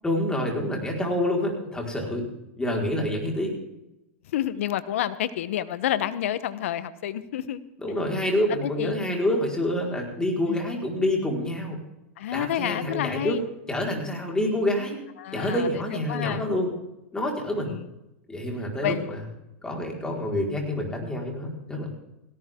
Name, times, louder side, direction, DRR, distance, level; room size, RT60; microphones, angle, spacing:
voice 1, 0.0-2.3 2.6-3.5 7.8-11.8 12.3-13.4 13.7-15.0 15.3-16.7 17.1-17.7 18.3-19.2 19.6-21.9, left 1 dB, 10° left, 0 dB, 4.8 m, -27 dB
voice 2, 4.3-7.6 8.6-9.0 10.5-10.7 12.2-13.4 15.2-15.8 16.1-16.4 17.7-17.9 18.8-19.1, left 11 dB, 75° left, 15 dB, 1.1 m, -29 dB
17.5 x 17.5 x 3.8 m, 0.91 s
hypercardioid pair, 115°, 7 cm